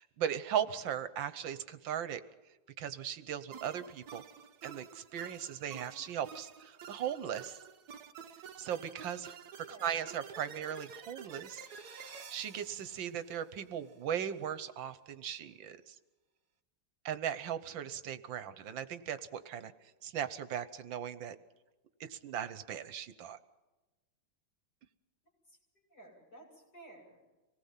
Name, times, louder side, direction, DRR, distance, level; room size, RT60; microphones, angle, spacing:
voice 1, 0.0-2.2 2.8-4.2 4.6-7.6 8.6-9.4 9.8-15.9 17.0-19.7 20.0-21.4 22.0-23.4, right 9 dB, 80° right, 12 dB, 1.7 m, -38 dB
sound 1, 3.5-13.9, right 7 dB, 60° right, 1.6 m, -50 dB
voice 2, 9.7-10.1 18.5-18.6 25.5-25.6 25.9-27.3, right 2 dB, 60° left, -2 dB, 8.7 m, -55 dB
26.0 x 19.0 x 5.8 m, 1.1 s
omnidirectional pair, 2.1 m